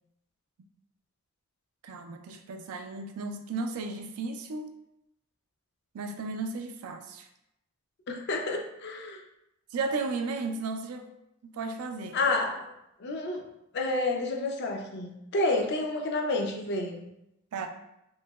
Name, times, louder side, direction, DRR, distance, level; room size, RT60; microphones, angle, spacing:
voice 1, 1.8-4.7 5.9-7.3 9.7-11.1 11.4-12.2 17.5-17.7, right 3 dB, 85° right, 6 dB, 0.3 m, -34 dB
voice 2, 8.1-9.2 12.1-12.7 13.0-17.1, left 2 dB, 50° left, 3 dB, 0.4 m, -30 dB
3.0 x 2.7 x 2.2 m, 0.84 s
head